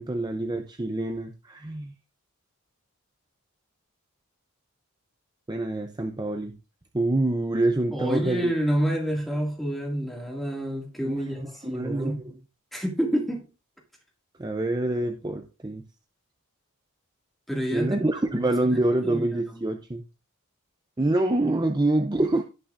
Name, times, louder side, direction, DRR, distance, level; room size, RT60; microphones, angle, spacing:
voice 1, 0.0-1.9 5.5-6.6 6.9-8.5 8.9-9.0 11.0-11.2 11.6-12.3 14.4-15.8 17.7-20.0 21.0-22.4, right 2 dB, 20° right, 0.6 m, -26 dB
voice 2, 7.9-12.2 12.7-13.5 17.5-18.0 18.3-19.6, equal, ahead, 2.1 m, -29 dB
17.5 x 5.9 x 2.5 m
head